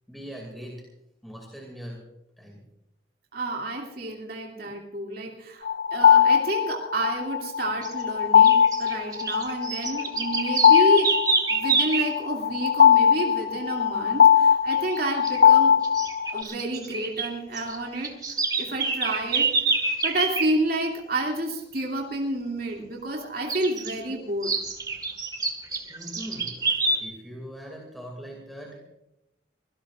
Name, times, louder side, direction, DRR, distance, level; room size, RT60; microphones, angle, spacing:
voice 1, 0.1-0.8 1.2-2.0 2.4-2.6 25.9-26.6 27.0-28.9, equal, ahead, -1 dB, 2.6 m, -40 dB
voice 2, 3.3-11.1 11.5-15.7 16.3-18.1 18.6-19.5 20.0-24.5, right 1 dB, 50° right, -1 dB, 2.7 m, -30 dB
sound 1, 5.7-16.4, left 8 dB, 45° left, 0.9 m, -20 dB
sound 2, 7.8-8.0 8.4-12.2 14.7-15.0 15.2-15.4 15.8-17.3 17.5-20.5 23.5-24.0 24.4-27.0, right 4 dB, 20° right, 1.8 m, -27 dB
25.5 x 17.5 x 2.5 m, 0.87 s
head